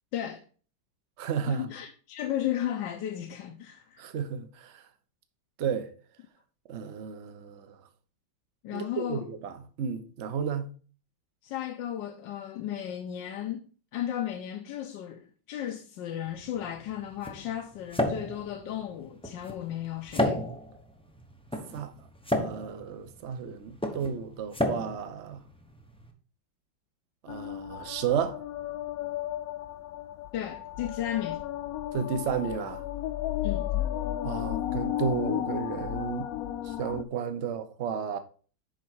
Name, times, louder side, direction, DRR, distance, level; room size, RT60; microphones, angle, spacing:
voice 1, 0.1-0.4 1.5-4.1 8.6-9.3 11.4-13.7 13.9-20.4 30.3-31.4 33.4-33.8, left 11 dB, 75° left, 1.3 m, -34 dB
voice 2, 1.2-1.7 4.0-4.8 5.6-5.9 6.7-7.7 8.7-10.7 21.7-21.9 22.3-25.4 27.2-28.4 31.9-32.8 34.2-36.3 36.6-38.2, right 7 dB, 50° right, 0.8 m, -33 dB
sound 1, 16.3-26.1, left 1 dB, 5° left, 0.4 m, -33 dB
sound 2, 27.3-37.0, left 12 dB, 90° left, 0.7 m, -33 dB
7.3 x 5.3 x 4.5 m
omnidirectional pair, 2.1 m